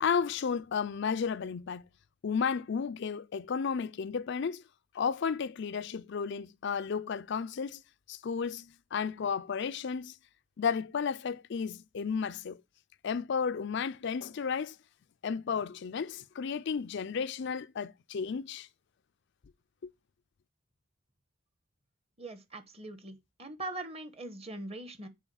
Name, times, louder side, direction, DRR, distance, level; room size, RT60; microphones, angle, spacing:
voice 1, 0.0-1.8 2.2-4.6 4.9-7.8 8.1-10.2 10.6-12.6 13.0-14.8 15.2-18.7 19.8-19.9, left 6 dB, 60° left, 0.4 m, -33 dB
voice 2, 22.2-25.1, right 2 dB, 30° right, 1.3 m, -42 dB
7.1 x 4.9 x 7.0 m
head